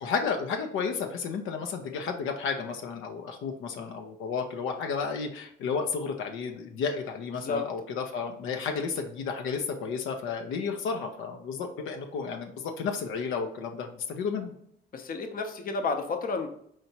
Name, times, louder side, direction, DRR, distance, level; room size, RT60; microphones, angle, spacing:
voice 1, 0.0-14.5, left 5 dB, 85° left, 4 dB, 0.5 m, -32 dB
voice 2, 7.3-7.7 14.9-16.5, left 4 dB, 45° left, 6 dB, 0.7 m, -31 dB
4.4 x 2.8 x 2.8 m, 0.69 s
cardioid pair, 90°, 20 cm